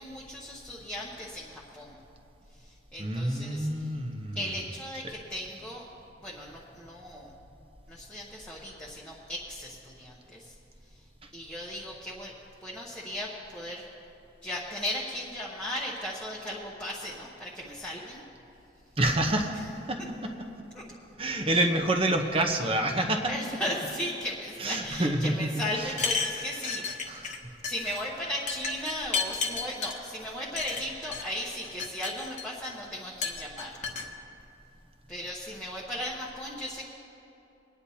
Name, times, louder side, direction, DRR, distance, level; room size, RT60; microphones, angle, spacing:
voice 1, 0.0-2.0 2.6-3.9 4.3-5.8 6.2-7.3 7.9-10.5 11.3-12.3 12.6-13.8 14.4-18.2 21.4-21.6 23.3-27.2 27.6-33.8 35.1-36.8, equal, 5° left, -6 dB, 1.0 m, -36 dB
voice 2, 3.0-4.6 19.0-20.3 21.2-23.3 24.6-25.9 27.1-27.5, right 1 dB, 30° right, 5 dB, 0.8 m, -28 dB
sound 1, 25.9-27.4 27.6-28.0 28.5-30.0 30.6-31.2 31.6-32.7 33.2-34.1, left 4 dB, 40° left, 1.0 m, -32 dB
23.5 x 9.8 x 2.8 m, 2.9 s
head